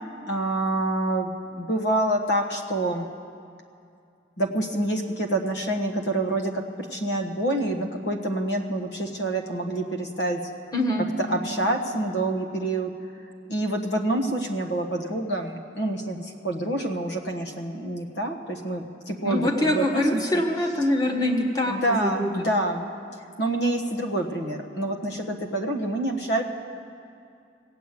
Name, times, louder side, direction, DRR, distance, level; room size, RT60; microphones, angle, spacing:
voice 1, 0.3-3.1 4.4-10.4 11.0-12.9 13.5-20.4 21.6-22.9 23.4-26.4, right 1 dB, 70° left, 5 dB, 1.3 m, -27 dB
voice 2, 10.7-11.1 19.2-22.3, left 1 dB, 20° left, 0 dB, 1.4 m, -24 dB
17.5 x 8.2 x 8.4 m, 2.4 s
head